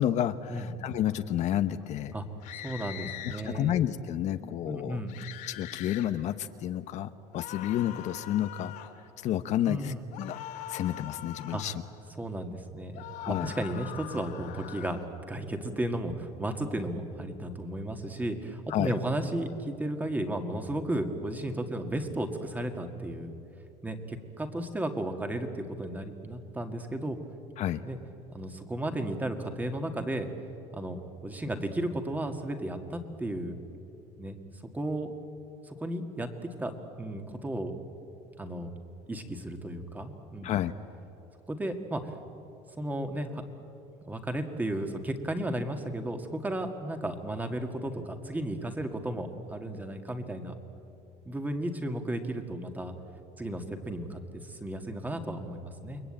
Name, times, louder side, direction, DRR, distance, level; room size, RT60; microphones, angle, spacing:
voice 1, 0.0-2.1 3.4-5.0 5.5-10.4 10.7-11.7 13.2-13.5 18.7-18.9 27.6-27.8 40.4-40.7, left 11 dB, 50° left, 10 dB, 0.9 m, -30 dB
sound 1, 2.4-3.4 5.1-6.1 7.3-8.9 10.1-11.8 12.9-15.1, left 12 dB, 70° left, 2.7 m, -42 dB
voice 2, 2.5-3.7 4.7-5.1 9.7-10.1 11.5-11.6 12.2-15.0 15.3-23.3 23.8-27.2 27.9-28.0 28.3-30.3 30.7-31.0 31.2-33.6 34.2-34.4 34.7-35.1 35.6-37.8 38.4-38.7 39.1-40.6 41.5-42.1 42.8-43.4 44.1-50.5 51.3-52.9 53.4-56.0, right 1 dB, 10° right, 6 dB, 1.9 m, -34 dB
29.0 x 21.5 x 8.8 m, 3.0 s
cardioid pair, 130°, 15 cm